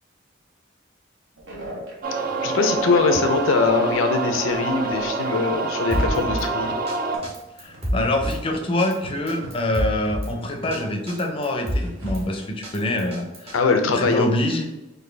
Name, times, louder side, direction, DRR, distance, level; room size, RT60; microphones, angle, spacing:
sound 1, 1.4-5.5 5.9-12.4, right 1 dB, 70° right, 1.0 m, -40 dB
sound 2, 2.0-7.2, right 3 dB, 45° right, 0.4 m, -26 dB
voice 1, 2.4-6.7 13.5-14.3, left 4 dB, 85° left, 5 dB, 0.5 m, -22 dB
Drum kit, 5.9-6.5 6.9-7.0 7.2-8.4 8.8-9.0 9.3-10.3 10.7-10.8 11.1-12.2 12.6-13.6, equal, 30° right, 0.8 m, -27 dB
voice 2, 7.6-13.5 13.9-14.7, left 1 dB, 30° left, 3 dB, 0.5 m, -25 dB
4.0 x 2.6 x 3.2 m, 1.0 s
head